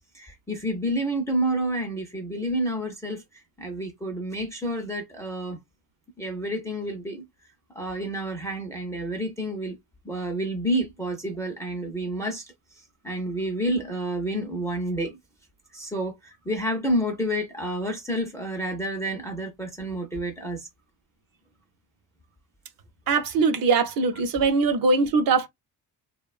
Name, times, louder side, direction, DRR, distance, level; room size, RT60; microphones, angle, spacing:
voice 1, 0.1-5.6 6.2-7.2 7.7-9.7 10.0-15.2 15.7-20.7 24.4-24.5, right 1 dB, 10° left, 0.4 m, -29 dB
voice 2, 23.1-25.5, right 4 dB, 55° right, 0.5 m, -21 dB
3.0 x 2.1 x 2.3 m
cardioid pair, 170°, 42 cm